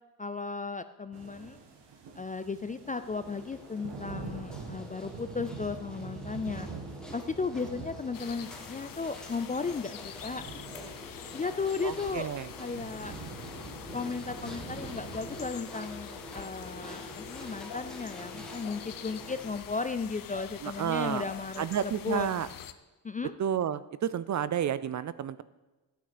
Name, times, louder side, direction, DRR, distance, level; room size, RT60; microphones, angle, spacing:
voice 1, 0.2-1.6 2.2-6.7 7.1-10.6 11.3-12.3 12.6-13.1 13.9-22.3 23.0-23.3, left 4 dB, 20° left, 11 dB, 0.3 m, -35 dB
sound 1, 1.1-15.5, right 4 dB, 80° right, 2.0 m, -45 dB
sound 2, 2.8-19.6, equal, ahead, 1.8 m, -47 dB
sound 3, 8.1-22.7, left 10 dB, 55° left, 0.7 m, -45 dB
voice 2, 11.8-12.5 20.6-21.2 21.6-22.5 23.4-25.4, right 9 dB, 45° right, 16 dB, 0.5 m, -31 dB
14.5 x 9.1 x 5.1 m, 1.1 s
cardioid pair, 135°, 42 cm